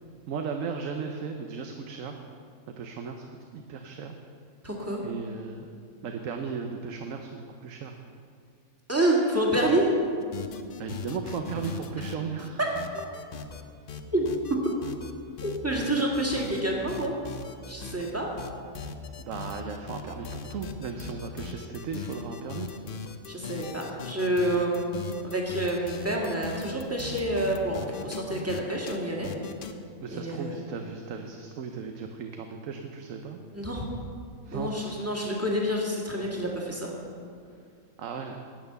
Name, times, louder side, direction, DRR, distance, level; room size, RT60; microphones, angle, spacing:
voice 1, 0.3-2.2 2.7-3.3 3.5-4.2 5.0-5.7 6.0-8.0 10.8-12.6 19.2-22.8 30.0-33.4 34.4-35.2 38.0-38.4, right 5 dB, 75° right, 4 dB, 1.1 m, -36 dB
voice 2, 4.6-5.0 8.9-9.9 12.6-12.7 14.1-14.2 14.5-14.6 15.4-17.1 17.7-18.3 23.3-24.8 25.2-29.3 30.1-30.6 33.5-33.9 34.5-36.9, right 1 dB, 10° right, -2 dB, 1.8 m, -28 dB
sound 1, 10.2-12.5 12.8-13.6 13.9-15.1 15.4-16.6 16.9-18.1 18.4-28.6 28.9-29.0 29.2-29.7, left 6 dB, 50° left, 0.8 m, -39 dB
10.5 x 8.9 x 6.8 m, 2.3 s
omnidirectional pair, 1.4 m